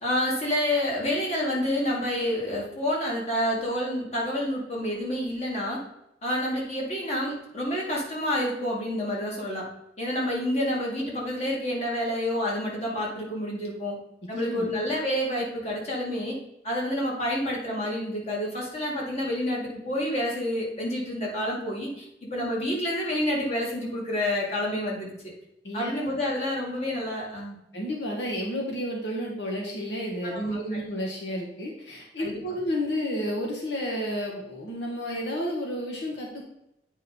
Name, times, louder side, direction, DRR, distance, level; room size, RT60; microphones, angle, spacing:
voice 1, 0.0-5.8 6.2-9.7 10.0-14.0 14.3-16.4 16.6-22.1 22.3-25.1 25.7-27.6 30.2-30.6 32.2-32.4, left 1 dB, 40° left, -3 dB, 2.3 m, -28 dB
voice 2, 27.7-36.4, equal, 80° left, -1 dB, 1.4 m, -31 dB
8.5 x 5.2 x 4.2 m, 0.82 s
head